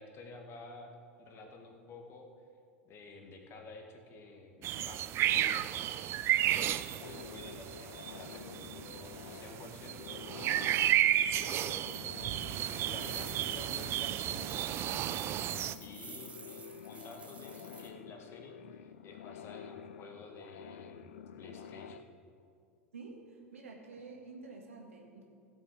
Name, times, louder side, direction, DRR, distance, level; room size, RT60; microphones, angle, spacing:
voice 1, 0.0-2.3 2.8-10.7 11.3-12.5 12.8-15.3 15.8-21.1 21.4-22.1, left 3 dB, 35° left, 3 dB, 1.7 m, -51 dB
sound 1, 4.6-15.7, right 12 dB, 35° right, 0.4 m, -33 dB
sound 2, 7.0-22.0, left 8 dB, 65° left, 0.4 m, -50 dB
sound 3, 12.3-17.9, right 4 dB, 15° right, 1.1 m, -50 dB
voice 2, 22.9-25.2, right 3 dB, 75° right, 0 dB, 2.0 m, -49 dB
16.5 x 7.9 x 4.8 m, 2.4 s
figure-of-eight pair, 85°, 7 cm